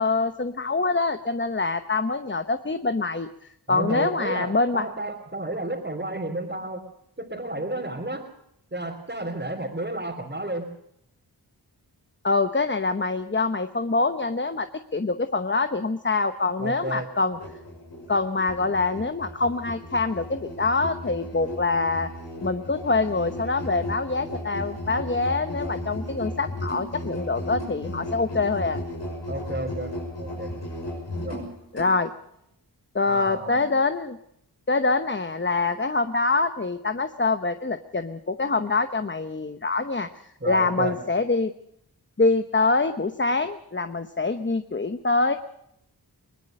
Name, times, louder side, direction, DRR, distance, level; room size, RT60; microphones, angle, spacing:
voice 1, 0.0-3.3 3.7-4.9 12.2-17.4 18.1-22.1 22.4-28.8 31.7-32.1 32.9-34.2 34.7-40.1 40.5-41.5 42.2-45.4, left 3 dB, 30° left, 9 dB, 1.0 m, -25 dB
voice 2, 3.7-6.8 7.2-8.3 8.7-10.7 16.6-17.1 29.3-30.5 31.2-31.5 33.0-33.7 40.4-41.0, right 1 dB, 25° right, -2 dB, 3.6 m, -32 dB
Musical instrument, 17.3-31.9, left 1 dB, 90° left, 6.4 m, -35 dB
21.5 x 19.5 x 6.6 m, 0.77 s
cardioid pair, 45°, 41 cm